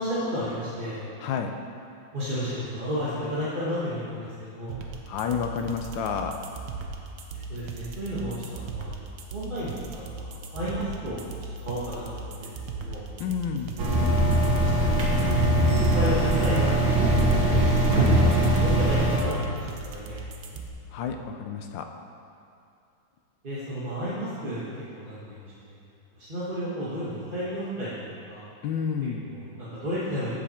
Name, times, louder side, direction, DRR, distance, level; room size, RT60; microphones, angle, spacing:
voice 1, 0.0-1.0 2.1-4.8 7.5-8.9 9.3-11.3 11.6-13.0 13.9-14.0 14.5-17.6 17.9-19.5 19.8-20.6 23.4-24.6 24.9-25.7 26.1-28.5 29.2-30.3, equal, 30° right, -11 dB, 1.6 m, -33 dB
voice 2, 1.2-1.5 5.1-6.4 13.2-13.7 17.9-18.1 20.9-21.9 28.6-29.2, left 7 dB, 80° left, 5 dB, 1.4 m, -30 dB
sound 1, 4.7-20.7, right 4 dB, 65° right, 1.3 m, -38 dB
sound 2, 13.8-19.2, right 1 dB, 85° right, 2.0 m, -21 dB
15.0 x 5.2 x 4.3 m, 2.5 s
omnidirectional pair, 2.1 m